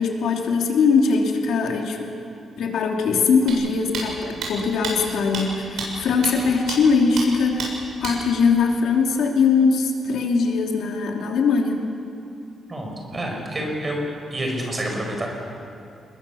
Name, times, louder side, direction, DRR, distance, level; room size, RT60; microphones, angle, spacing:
voice 1, 0.0-2.1 2.6-11.8, left 5 dB, 80° left, 1 dB, 2.9 m, -21 dB
sound 1, 3.5-3.6 3.9-4.0 4.4-4.5 4.8-4.9 5.3-5.4 5.8-5.9 6.2-6.3 6.7-6.8 7.2-7.3 7.6-7.7 8.0-8.1, right 5 dB, 80° right, 7.0 m, -28 dB
voice 2, 12.7-14.0 14.3-15.3, right 1 dB, 20° right, 1 dB, 4.9 m, -28 dB
28.0 x 21.5 x 7.1 m, 2.6 s
wide cardioid pair, 170°, 0 cm